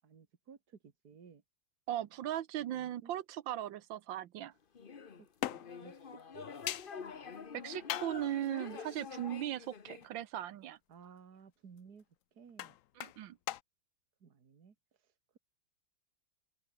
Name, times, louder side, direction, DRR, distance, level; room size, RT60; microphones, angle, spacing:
voice 1, 0.0-1.4 2.6-3.1 5.2-5.3 5.5-6.5 10.9-12.1 12.3-12.8 14.2-14.7, right 6 dB, 55° right, 2.5 m, -56 dB
voice 2, 1.9-4.5 7.5-10.8 13.0-13.4, right 12 dB, 90° right, 1.7 m, -38 dB
sound 1, 4.7-10.1, left 6 dB, 35° left, 1.0 m, -47 dB
sound 2, 5.4-5.8 6.7-7.0 7.9-8.3 9.2-9.3 10.0-10.1 12.5-13.2 13.5-13.6, left 13 dB, 75° left, 0.7 m, -39 dB
open air
omnidirectional pair, 2.0 m